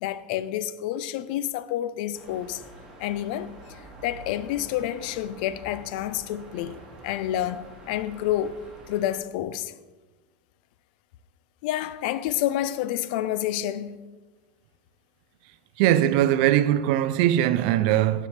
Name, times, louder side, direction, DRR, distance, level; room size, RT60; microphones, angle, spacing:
voice 1, 0.0-2.6 3.0-8.6 8.9-9.7 11.6-14.0, left 12 dB, 60° left, 0.4 m, -29 dB
sound 1, 2.1-9.2, right 1 dB, 15° right, 2.1 m, -47 dB
voice 2, 15.8-18.3, right 12 dB, 55° right, 0.4 m, -21 dB
9.7 x 8.0 x 3.3 m
supercardioid pair, 155°, 5 cm